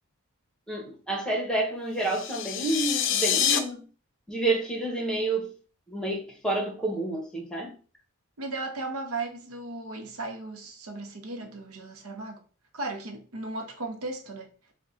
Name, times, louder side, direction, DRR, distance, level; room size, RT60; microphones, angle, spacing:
voice 1, 0.7-3.8 4.3-5.5 5.9-7.7, right 2 dB, 5° left, 0.8 m, -29 dB
sound 1, 2.0-3.6, left 9 dB, 55° left, 0.4 m, -26 dB
voice 2, 8.4-12.4 12.7-14.5, right 2 dB, 75° right, 0.7 m, -36 dB
3.7 x 2.2 x 3.8 m
head